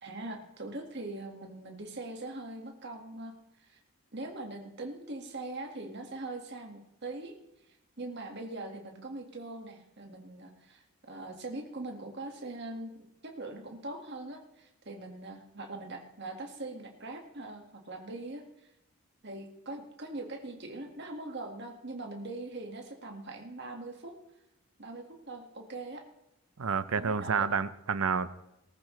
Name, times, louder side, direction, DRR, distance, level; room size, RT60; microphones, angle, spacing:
voice 1, 0.0-3.8 4.1-7.3 7.7-18.7 19.2-24.2 24.8-26.0 27.0-27.5, right 2 dB, 50° right, 2 dB, 1.9 m, -42 dB
voice 2, 26.6-28.3, right 5 dB, 75° right, 14 dB, 0.7 m, -29 dB
19.0 x 14.0 x 3.3 m, 0.88 s
head